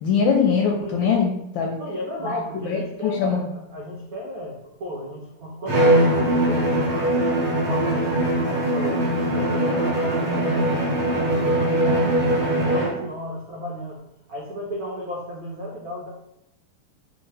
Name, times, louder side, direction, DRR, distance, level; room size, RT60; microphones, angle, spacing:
voice 1, 0.0-1.8 2.2-2.4 2.6-3.5, left 6 dB, 75° left, 1 dB, 1.1 m, -22 dB
voice 2, 0.8-1.1 1.8-10.9 11.3-14.0 14.3-16.1, left 1 dB, 75° right, -5 dB, 0.8 m, -34 dB
Bowed string instrument, 5.7-13.1, right 1 dB, 35° right, 0.7 m, -21 dB
3.4 x 2.4 x 3.2 m, 0.82 s
omnidirectional pair, 2.4 m